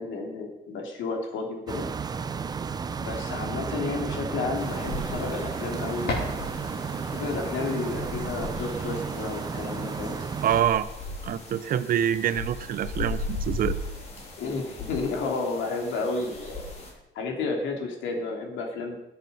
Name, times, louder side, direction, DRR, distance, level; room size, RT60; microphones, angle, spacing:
voice 1, 0.0-1.9 3.0-6.5 7.0-10.2 14.4-16.7 17.1-19.0, left 3 dB, 75° left, 2 dB, 3.1 m, -32 dB
sound 1, 1.7-10.6, right 5 dB, 20° right, 0.5 m, -33 dB
sound 2, 3.3-8.7, left 2 dB, 55° left, 5.2 m, -39 dB
sound 3, 4.5-16.9, left 2 dB, 35° left, 3.4 m, -38 dB
voice 2, 10.4-10.9 11.2-13.7, right 10 dB, 45° right, 14 dB, 0.8 m, -25 dB
21.0 x 8.1 x 5.5 m, 0.91 s
cardioid pair, 170°, 20 cm